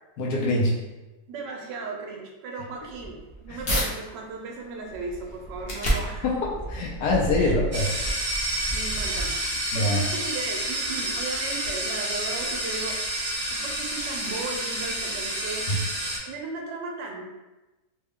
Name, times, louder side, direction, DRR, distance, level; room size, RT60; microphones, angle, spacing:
voice 1, 0.2-0.7 3.5-3.6 6.2-6.4 6.7-7.8 9.7-10.0 15.7-15.8, left 2 dB, 70° left, -3 dB, 1.1 m, -24 dB
voice 2, 1.3-6.2 7.4-7.5 8.7-9.4 9.7-13.0 13.5-15.8 16.2-17.2, right 3 dB, 75° right, 0 dB, 1.2 m, -36 dB
sound 1, 2.9-3.9 4.4-9.7, right 1 dB, 55° left, 0.7 m, -31 dB
sound 2, 7.7-16.2, right 1 dB, 40° right, 0.7 m, -29 dB
3.3 x 2.2 x 3.5 m, 1.1 s
omnidirectional pair, 2.0 m